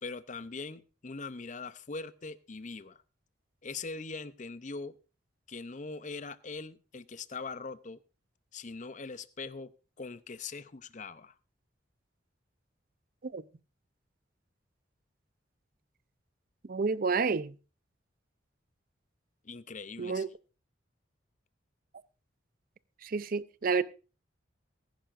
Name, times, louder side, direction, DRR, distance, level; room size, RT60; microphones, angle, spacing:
voice 1, 0.0-3.0 3.6-5.0 5.5-8.0 8.5-9.7 10.0-11.4 19.4-20.2, left 4 dB, 40° left, 0.6 m, -41 dB
voice 2, 16.6-17.6 20.0-20.3 23.0-23.8, right 5 dB, 50° right, 0.5 m, -30 dB
20.0 x 10.5 x 2.5 m
head